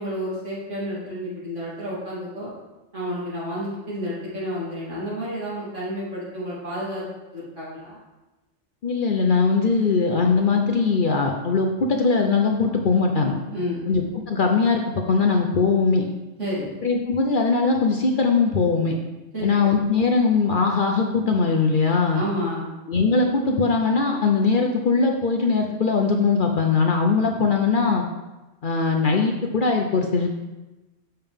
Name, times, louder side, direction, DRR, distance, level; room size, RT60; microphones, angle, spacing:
voice 1, 0.0-2.5 2.9-7.1 7.3-8.0 13.5-13.8 16.4-16.8 19.3-19.5 22.1-22.7, equal, 70° right, -8 dB, 3.4 m, -30 dB
voice 2, 8.8-13.3 13.9-16.1 16.8-19.0 19.4-22.2 22.9-28.0 28.6-30.3, left 4 dB, 50° left, 2 dB, 0.7 m, -20 dB
7.5 x 6.7 x 3.5 m, 1.1 s
omnidirectional pair, 1.3 m